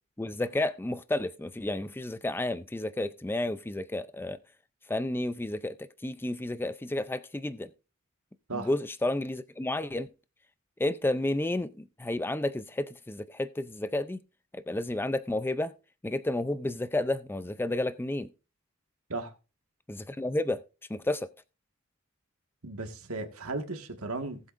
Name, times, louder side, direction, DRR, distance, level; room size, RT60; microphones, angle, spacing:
voice 1, 0.2-4.4 4.9-7.7 8.5-10.1 10.8-14.2 14.5-15.7 16.0-18.3 19.9-20.6 20.9-21.3, left 1 dB, 10° left, 0.4 m, -31 dB
voice 2, 22.6-24.4, right 3 dB, 85° right, 1.7 m, -35 dB
18.5 x 8.0 x 2.5 m
head